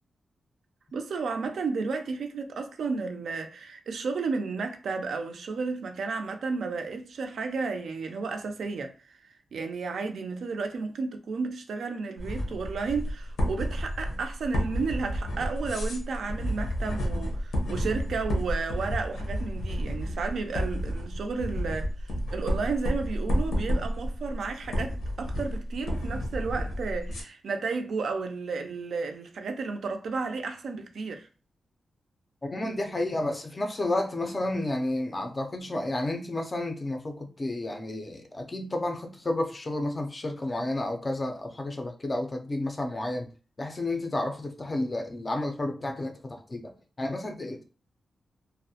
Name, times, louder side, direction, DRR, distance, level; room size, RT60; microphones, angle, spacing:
voice 1, 0.9-31.3, right 4 dB, 75° right, 0.3 m, -33 dB
sound 1, 12.2-27.2, equal, 90° left, 0.7 m, -31 dB
voice 2, 32.4-43.3 43.6-46.7 47.0-47.6, left 1 dB, 25° left, 0.4 m, -31 dB
2.3 x 2.0 x 2.7 m
wide cardioid pair, 150°, 0 cm